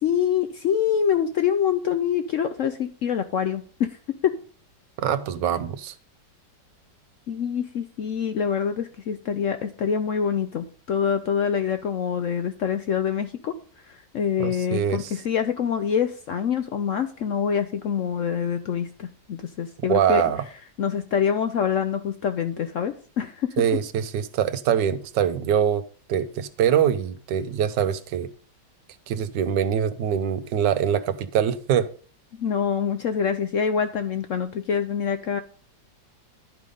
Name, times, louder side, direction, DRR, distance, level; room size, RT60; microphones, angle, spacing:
voice 1, 0.0-4.0 4.2-4.3 7.3-13.5 13.9-20.2 20.8-23.6 32.4-35.4, left 7 dB, 65° left, 0.8 m, -25 dB
voice 2, 5.0-5.9 14.4-15.1 19.9-20.4 23.6-25.8 26.1-28.3 29.1-31.9, right 9 dB, 80° right, 1.4 m, -23 dB
11.0 x 5.0 x 5.3 m
omnidirectional pair, 1.9 m